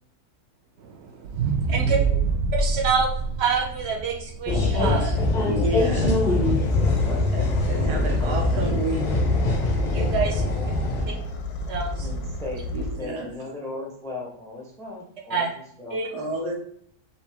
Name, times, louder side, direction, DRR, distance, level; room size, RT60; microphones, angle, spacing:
voice 1, 0.8-2.0 2.5-3.1 3.4-5.1 9.9-10.4 11.7-12.1 15.3-15.5 15.9-16.1, right 5 dB, 50° right, 0 dB, 1.0 m, -27 dB
sound 1, 1.2-5.5 6.0-6.1, right 4 dB, 70° right, 0.7 m, -26 dB
voice 2, 1.7-2.2 5.6-6.2 6.8-8.7 10.2-10.7 10.9-11.2 12.0-16.0, left 2 dB, 5° left, -2 dB, 0.6 m, -38 dB
sound 2, 4.5-11.0, left 2 dB, 40° left, 0.7 m, -23 dB
voice 3, 5.5-6.1 7.3-9.2 12.7-13.3 16.1-16.6, right 1 dB, 90° right, 2 dB, 1.5 m, -30 dB
sound 3, 6.4-13.2, left 2 dB, 85° left, 1.2 m, -33 dB
5.3 x 2.8 x 3.4 m, 0.63 s
omnidirectional pair, 1.7 m